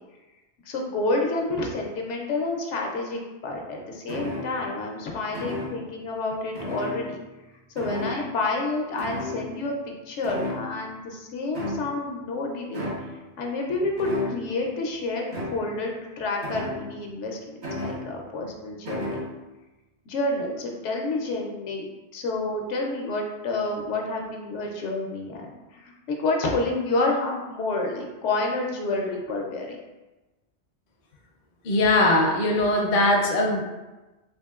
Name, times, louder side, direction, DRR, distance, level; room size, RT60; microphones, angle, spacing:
voice 1, 0.7-7.2 7.8-9.8 10.1-12.9 13.4-17.4 17.8-19.2 20.1-21.9 22.1-29.8, left 2 dB, 80° left, 1 dB, 0.9 m, -29 dB
sound 1, 4.1-4.8 5.3-6.0 6.5-7.5 7.8-8.4 9.0-9.9 10.2-11.0 11.5-12.2 12.7-13.2 14.0-14.6 15.3-15.8 16.4-17.1 17.6-18.4 18.9-19.3, left 1 dB, 65° right, 1.2 m, -34 dB
voice 2, 31.6-33.6, left 2 dB, 50° left, 0 dB, 0.6 m, -20 dB
3.5 x 3.3 x 2.3 m, 1.1 s
omnidirectional pair, 1.2 m